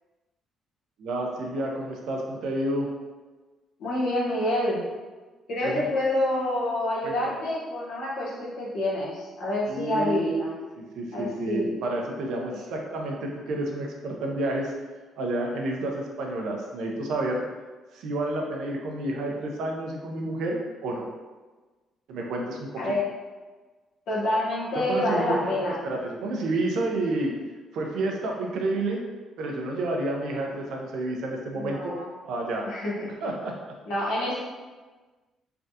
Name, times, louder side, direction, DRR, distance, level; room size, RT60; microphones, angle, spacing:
voice 1, 1.0-2.9 5.6-5.9 7.0-7.3 9.7-14.7 15.2-17.4 17.9-21.1 22.1-22.9 24.9-27.3 27.7-29.0 29.4-31.9 32.2-32.7 33.2-33.7, right 2 dB, 75° right, 0 dB, 0.5 m, -30 dB
voice 2, 3.8-4.8 5.5-10.5 11.1-11.7 12.5-12.6 22.8-23.0 24.1-25.8 31.5-32.1 32.6-33.1 33.9-34.4, left 1 dB, 75° left, -6 dB, 1.0 m, -27 dB
3.3 x 2.3 x 2.7 m, 1.3 s
cardioid pair, 80°, 0 cm